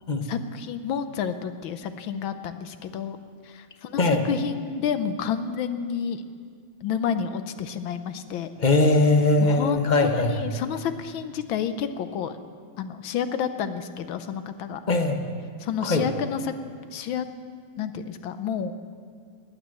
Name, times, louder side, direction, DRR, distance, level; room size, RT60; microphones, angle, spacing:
voice 1, 0.2-3.2 3.4-6.2 6.8-8.5 9.4-12.4 12.8-14.8 15.6-16.5 16.9-17.3 17.8-18.7, left 7 dB, 75° left, 10 dB, 1.6 m, -30 dB
voice 2, 8.6-10.5 14.9-15.2 15.8-16.1, left 2 dB, 35° left, 6 dB, 0.8 m, -21 dB
19.0 x 9.3 x 7.6 m, 2.1 s
omnidirectional pair, 2.2 m